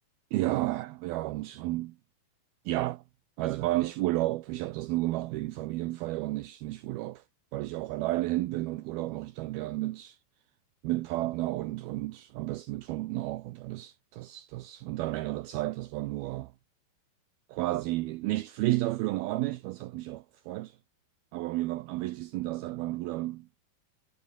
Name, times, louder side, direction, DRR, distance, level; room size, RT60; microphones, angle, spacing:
voice 1, 0.3-2.0 2.7-3.0 3.4-7.2 7.5-10.2 10.8-16.5 17.5-20.8 21.3-23.5, right 18 dB, 75° right, 2.4 m, -32 dB
omnidirectional pair, 4.8 m